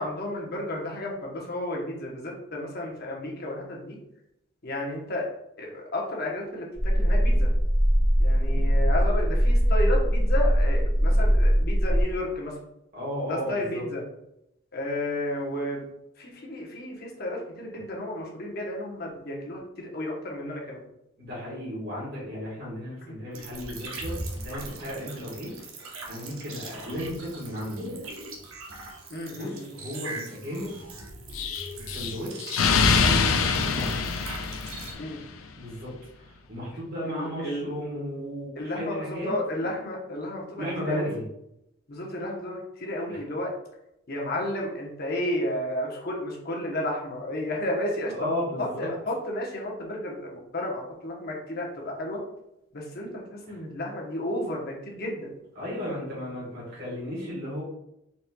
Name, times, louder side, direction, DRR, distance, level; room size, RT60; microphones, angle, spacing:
voice 1, 0.0-4.0 4.6-5.3 5.6-7.5 8.2-12.6 13.3-14.0 14.7-15.8 16.2-20.8 23.0-23.1 29.1-29.6 35.0-35.2 37.1-37.7 38.6-41.1 41.9-43.5 44.1-48.1 48.6-52.2 52.7-55.3, left 1 dB, 50° left, -1 dB, 1.0 m, -32 dB
sound 1, 6.8-12.0, equal, 5° right, 1.4 m, -21 dB
voice 2, 12.9-13.9 21.2-25.5 26.0-27.9 29.3-30.7 31.8-32.5 32.9-34.1 35.6-39.3 40.5-41.3 43.1-43.2 48.1-48.9 53.5-53.6 55.5-57.6, equal, 50° right, -7 dB, 1.5 m, -34 dB
sound 2, 23.3-34.9, right 2 dB, 80° right, 0.9 m, -40 dB
Explosion, 31.3-35.2, left 5 dB, 75° left, 0.4 m, -24 dB
4.2 x 4.1 x 2.3 m, 0.84 s
head